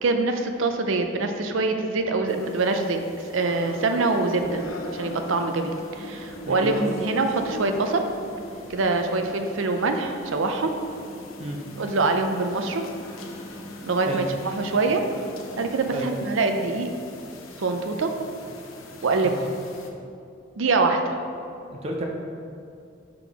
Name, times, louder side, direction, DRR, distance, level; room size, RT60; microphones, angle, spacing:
voice 1, 0.0-4.6 4.9-8.0 8.7-10.7 11.8-12.9 13.8-15.0 15.6-16.9 17.6-18.1 19.0-19.5 20.6-21.1, right 3 dB, 75° right, 5 dB, 0.5 m, -24 dB
sound 1, 2.3-19.9, left 1 dB, 85° left, 0.6 m, -41 dB
sound 2, 4.4-15.8, equal, 35° left, 0.6 m, -43 dB
voice 2, 21.7-22.0, right 1 dB, 30° right, 0 dB, 0.5 m, -31 dB
5.9 x 3.7 x 4.6 m, 2.5 s
head